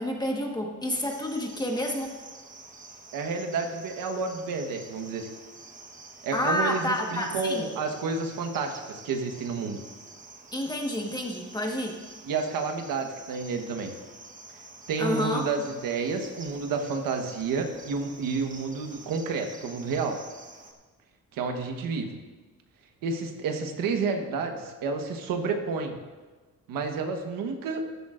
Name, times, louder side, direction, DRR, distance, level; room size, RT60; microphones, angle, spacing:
voice 1, 0.0-2.1 6.3-7.6 10.5-11.9 15.0-15.5, left 1 dB, 10° left, 1 dB, 1.4 m, -29 dB
Cricket, 1.1-20.7, right 3 dB, 25° right, 1.2 m, -48 dB
voice 2, 3.1-5.3 6.2-9.8 12.2-13.9 14.9-20.2 21.3-22.2 23.0-26.0 26.7-27.8, right 4 dB, 90° right, 4 dB, 1.3 m, -30 dB
14.0 x 12.0 x 2.5 m, 1.3 s
cardioid pair, 135°, 33 cm